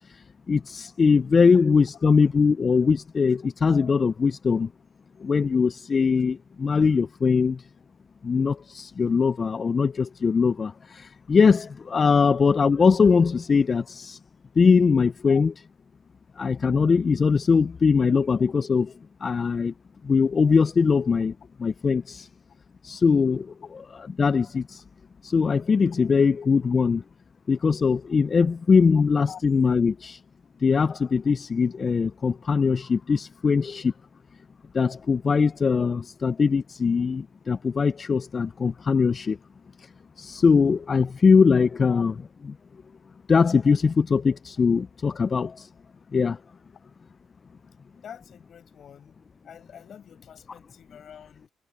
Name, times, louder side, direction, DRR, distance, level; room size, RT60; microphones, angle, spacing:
voice 1, 0.1-4.7 5.2-7.6 8.2-14.2 14.6-15.5 16.4-18.9 19.2-19.7 20.0-21.3 21.6-22.3 22.8-23.5 24.2-24.8 25.2-27.0 27.5-30.2 30.6-33.9 34.7-39.4 39.8-39.9 40.2-42.1 43.3-45.7 46.1-46.4, left 5 dB, 40° left, 0.3 m, -21 dB
voice 2, 48.0-49.2 49.4-51.5, left 8 dB, 60° left, 7.2 m, -44 dB
cardioid pair, 90°, 0 cm